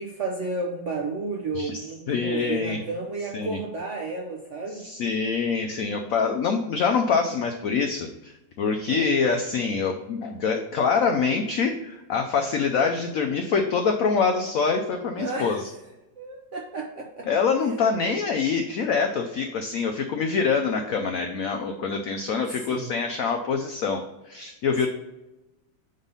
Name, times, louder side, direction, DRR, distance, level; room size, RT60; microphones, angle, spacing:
voice 1, 0.0-4.8 8.9-9.1 15.2-15.6 16.2-17.3 22.5-22.9, right 3 dB, 65° right, 0 dB, 0.7 m, -32 dB
voice 2, 2.1-2.8 3.3-3.6 4.7-8.3 8.6-15.6 17.3-24.9, left 5 dB, 80° left, 4 dB, 0.7 m, -25 dB
5.4 x 4.0 x 5.2 m, 0.99 s
omnidirectional pair, 2.0 m